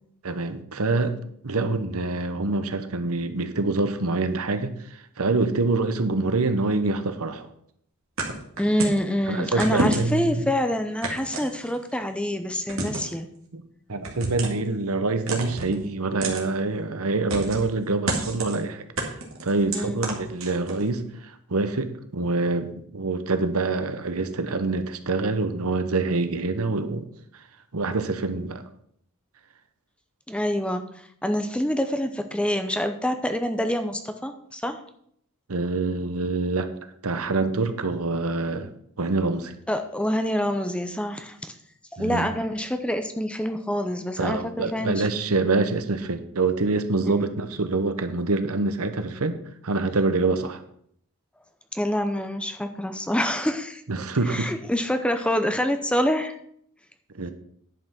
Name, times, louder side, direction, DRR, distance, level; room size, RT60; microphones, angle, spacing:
voice 1, 0.2-1.2 1.4-7.5 9.3-10.5 13.5-13.6 13.9-18.8 19.4-27.1 27.7-28.6 35.5-36.7 37.0-38.7 39.0-39.5 42.0-42.3 44.2-49.4 49.6-50.6 53.9-54.5 57.1-57.3, right 3 dB, 75° right, 9 dB, 1.0 m, -26 dB
sound 1, 8.2-9.0 9.6-10.3 11.0-12.0 12.7-13.2 14.0-14.7 15.3-15.8 16.2-16.5 17.3-17.7 18.1-18.6 19.0-20.8, right 2 dB, 60° right, 2.2 m, -29 dB
voice 2, 8.6-13.3 19.7-20.0 30.3-30.8 31.2-34.8 39.7-41.5 42.0-45.1 47.0-47.3 51.7-53.8 54.2-56.4, equal, 5° left, 7 dB, 0.6 m, -26 dB
10.5 x 5.6 x 6.0 m, 0.68 s
head